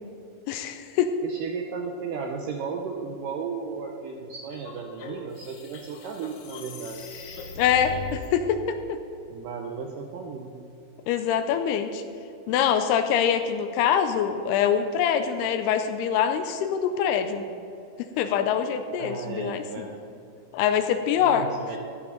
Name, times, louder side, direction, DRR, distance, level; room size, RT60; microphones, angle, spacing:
voice 1, 0.5-1.2 7.6-9.0 11.1-12.0 12.5-17.5 18.0-19.9 20.5-21.5, left 8 dB, 85° left, 8 dB, 2.6 m, -24 dB
voice 2, 1.2-7.0 9.3-10.6 19.0-20.0 21.2-21.8, right 5 dB, 80° right, 2 dB, 2.0 m, -35 dB
sound 1, 4.5-8.3, left 3 dB, 65° left, 2.0 m, -39 dB
14.0 x 11.0 x 3.9 m, 2.6 s
omnidirectional pair, 4.6 m